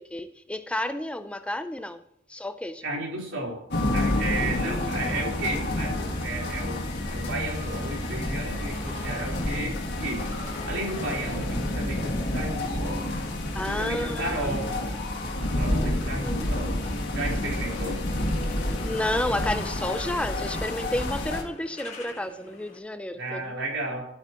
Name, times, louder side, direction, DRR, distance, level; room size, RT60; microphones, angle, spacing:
voice 1, 0.0-2.0 2.3-2.9 4.4-5.2 13.5-14.5 15.8-16.6 18.8-23.6, left 1 dB, 5° left, 0.4 m, -32 dB
voice 2, 2.8-3.6 3.9-10.3 10.7-13.0 13.7-14.9 15.4-16.7 17.1-18.0 23.2-24.1, right 2 dB, 75° right, 3.8 m, -33 dB
sound 1, 3.7-21.4, left 1 dB, 65° left, 1.9 m, -29 dB
sound 2, 4.8-13.2 18.1-18.8, equal, 55° right, 1.7 m, -41 dB
sound 3, 7.2-15.6 15.9-22.8, left 2 dB, 40° left, 1.6 m, -44 dB
12.0 x 8.7 x 2.9 m
head